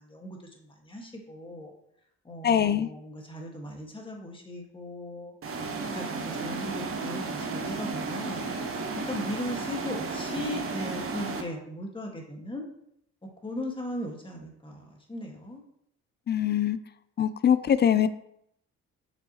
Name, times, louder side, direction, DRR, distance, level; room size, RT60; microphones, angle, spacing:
voice 1, 0.0-1.7 2.2-5.3 5.9-8.5 9.0-12.7 13.4-15.6, left 1 dB, 15° left, 1 dB, 1.6 m, -38 dB
voice 2, 2.4-2.9 16.3-16.8 17.2-18.1, left 9 dB, 35° left, 14 dB, 0.4 m, -23 dB
sound 1, 5.4-11.4, right 4 dB, 45° right, 1.1 m, -33 dB
6.8 x 6.1 x 2.9 m, 0.73 s
cardioid pair, 90°, 30 cm